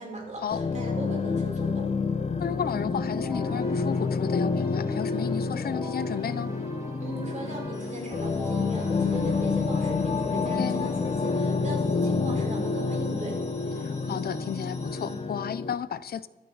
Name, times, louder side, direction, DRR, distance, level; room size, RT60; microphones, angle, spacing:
voice 1, 0.0-1.9 7.0-13.4, right 2 dB, 50° right, 1 dB, 4.4 m, -37 dB
sound 1, 0.5-15.7, left 4 dB, 45° left, 0.9 m, -28 dB
voice 2, 2.4-6.5 10.6-10.8 13.8-16.3, left 8 dB, 85° left, 16 dB, 0.6 m, -33 dB
Keyboard (musical), 3.1-9.6, equal, 20° right, 3.1 m, -45 dB
sound 2, 7.7-15.2, left 2 dB, 20° left, 3.1 m, -52 dB
22.5 x 10.0 x 4.0 m, 1.1 s
wide cardioid pair, 150°, 15 cm